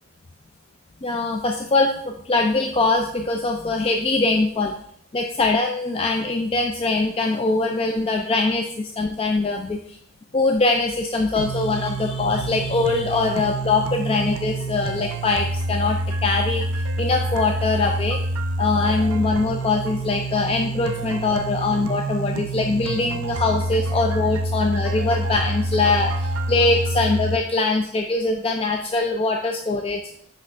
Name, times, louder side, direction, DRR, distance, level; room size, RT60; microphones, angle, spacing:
voice 1, 1.0-4.7 5.1-9.8 10.3-18.2 18.6-30.0, left 3 dB, 25° left, 3 dB, 0.4 m, -22 dB
sound 1, 11.4-27.4, right 2 dB, 85° right, 0.5 m, -27 dB
6.1 x 5.4 x 3.3 m, 0.67 s
head